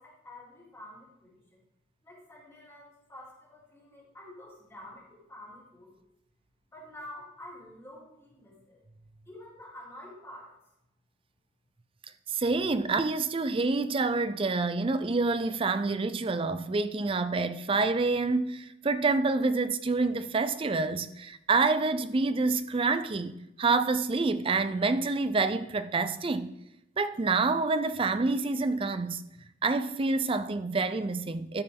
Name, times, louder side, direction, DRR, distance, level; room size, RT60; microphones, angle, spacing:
voice 1, 0.0-1.6 2.0-6.1 6.7-8.8 9.2-10.5, left 1 dB, 15° left, 3.0 m, -48 dB
voice 2, 12.3-26.5 27.0-29.2 29.6-31.6, right 3 dB, 25° right, 0.4 m, -27 dB
13.5 x 5.3 x 3.5 m
head